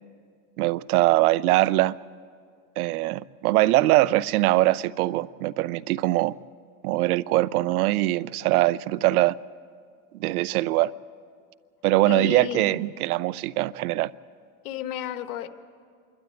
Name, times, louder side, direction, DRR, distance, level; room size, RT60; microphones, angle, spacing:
voice 1, 0.6-2.0 2.8-6.3 6.8-9.3 10.2-10.9 11.8-14.1, right 17 dB, 90° right, 0.6 m, -22 dB
voice 2, 12.0-12.7 14.6-15.5, left 11 dB, 85° left, 1.4 m, -32 dB
27.0 x 12.0 x 9.0 m
supercardioid pair, 105°, 43 cm